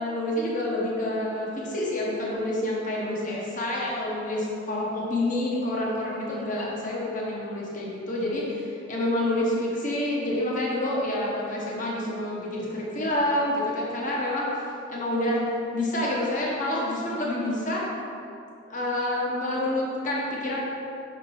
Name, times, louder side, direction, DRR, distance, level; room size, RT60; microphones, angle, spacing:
voice 1, 0.0-15.4 15.7-17.8 18.7-20.6, left 1 dB, 40° left, -4 dB, 1.2 m, -28 dB
5.9 x 5.2 x 4.3 m, 2.6 s
head